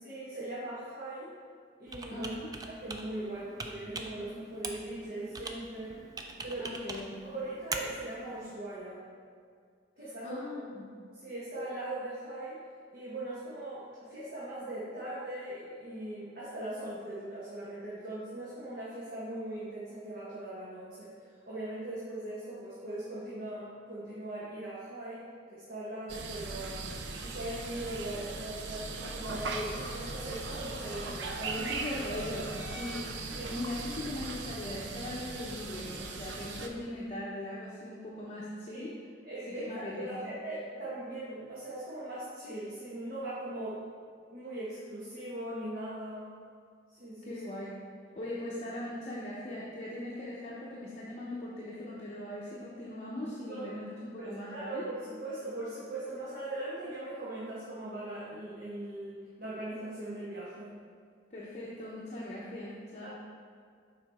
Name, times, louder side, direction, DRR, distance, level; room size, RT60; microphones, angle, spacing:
voice 1, 0.0-1.3 1.8-2.3 2.6-6.0 6.4-6.8 7.2-9.1 10.0-10.6 11.1-12.6 12.9-21.1 21.5-25.2 25.5-26.8 27.2-31.7 33.3-33.6 38.7-38.9 39.2-43.8 44.3-46.3 47.0-47.4 53.5-53.7 54.2-60.8 63.0-63.1, right 1 dB, 55° right, -9 dB, 1.4 m, -40 dB
Computer keyboard, 1.9-8.5, right 3 dB, 20° right, 0.4 m, -42 dB
voice 2, 2.1-2.5 6.6-7.2 10.2-10.9 31.6-38.9 39.5-40.3 47.2-47.7 48.2-54.8 61.3-63.1, left 1 dB, 35° left, -6 dB, 0.8 m, -40 dB
sound 1, 26.1-36.7, right 3 dB, 85° right, 0.6 m, -39 dB
sound 2, 29.4-34.3, left 3 dB, 70° left, 0.4 m, -50 dB
7.2 x 4.8 x 3.6 m, 2.1 s
head